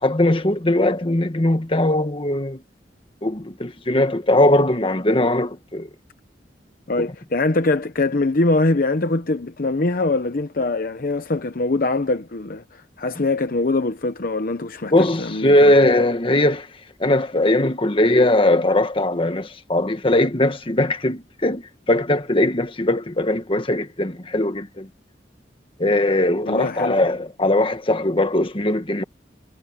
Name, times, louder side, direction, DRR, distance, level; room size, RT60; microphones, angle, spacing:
voice 1, 0.0-2.6 3.2-5.9 7.0-7.1 14.9-16.7 17.0-24.9 25.8-29.0, left 1 dB, 30° left, 1.5 m, -20 dB
voice 2, 6.9-15.7 26.5-26.9, left 2 dB, 55° left, 0.8 m, -23 dB
head